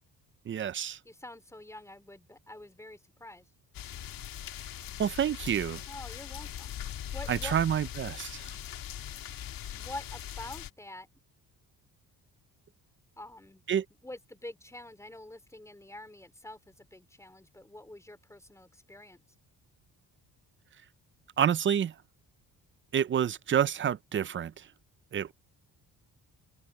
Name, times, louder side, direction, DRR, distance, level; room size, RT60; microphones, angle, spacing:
voice 1, 0.5-1.0 5.0-5.8 7.3-8.5 13.7-13.8 21.4-21.9 22.9-24.7 25.1-25.3, right 9 dB, 35° right, 0.5 m, -28 dB
voice 2, 1.0-3.5 5.9-6.8 7.1-7.6 9.7-11.1 13.2-13.6 14.0-19.2, left 1 dB, 10° left, 3.9 m, -46 dB
sound 1, 3.7-10.7, left 10 dB, 65° left, 1.6 m, -41 dB
cardioid pair, 135°, 37 cm